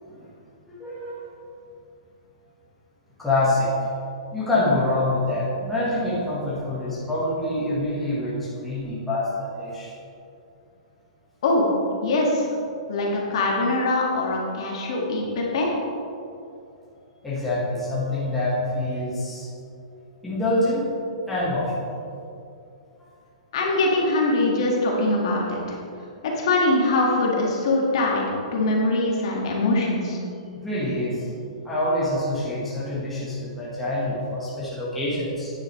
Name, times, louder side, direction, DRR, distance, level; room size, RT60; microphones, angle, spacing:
voice 1, 0.7-1.2 3.2-4.0 4.3-9.9 17.2-19.5 20.2-20.8 21.3-21.8 30.5-31.3 31.6-35.5, left 1 dB, 5° left, -10 dB, 1.3 m, -26 dB
voice 2, 12.0-12.5 12.9-15.7 23.5-25.8 26.2-28.3 28.5-30.2, left 2 dB, 50° left, -2 dB, 1.7 m, -22 dB
9.2 x 8.7 x 3.1 m, 2.5 s
hypercardioid pair, 175°, 4 cm